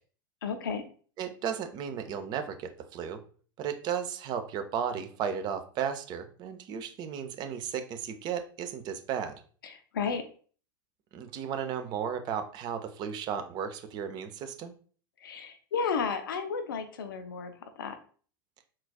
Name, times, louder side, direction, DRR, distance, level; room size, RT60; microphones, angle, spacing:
voice 1, 0.4-0.8 9.6-10.2 15.2-18.0, left 5 dB, 70° left, 7 dB, 0.5 m, -33 dB
voice 2, 1.2-3.2 3.6-9.4 11.1-14.7, right 8 dB, 40° right, 8 dB, 0.5 m, -34 dB
3.9 x 2.4 x 2.2 m, 0.42 s
figure-of-eight pair, 85°, 12 cm